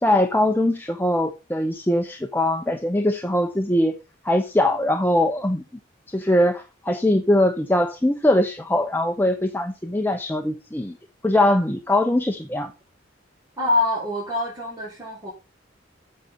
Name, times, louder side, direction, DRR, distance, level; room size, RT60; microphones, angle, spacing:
voice 1, 0.0-4.0 4.2-5.6 6.1-11.0 11.2-12.7, left 1 dB, 10° left, 0.8 m, -21 dB
voice 2, 13.6-15.3, left 2 dB, 20° right, 5.5 m, -25 dB
8.8 x 6.7 x 5.5 m
head